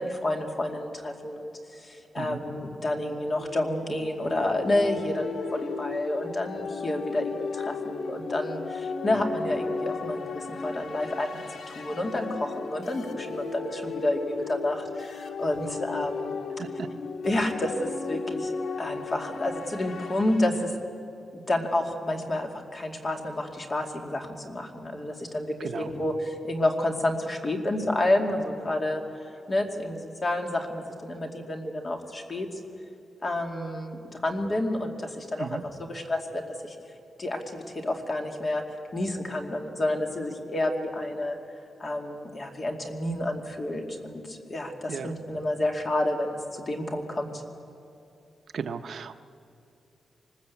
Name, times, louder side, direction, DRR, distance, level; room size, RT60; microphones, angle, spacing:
voice 1, 0.0-16.4 17.2-20.7 21.5-29.0 29.5-32.6 33.2-36.8 37.2-38.6 38.9-41.4 41.8-47.4, left 1 dB, 30° left, 3 dB, 2.4 m, -30 dB
sound 1, 3.4-20.6, left 4 dB, 80° left, 1.8 m, -35 dB
voice 2, 25.6-25.9 35.4-35.6 44.9-45.1 48.5-49.1, right 6 dB, 60° right, 9 dB, 0.8 m, -35 dB
24.5 x 20.5 x 8.3 m, 2.8 s
wide cardioid pair, 155°, 0 cm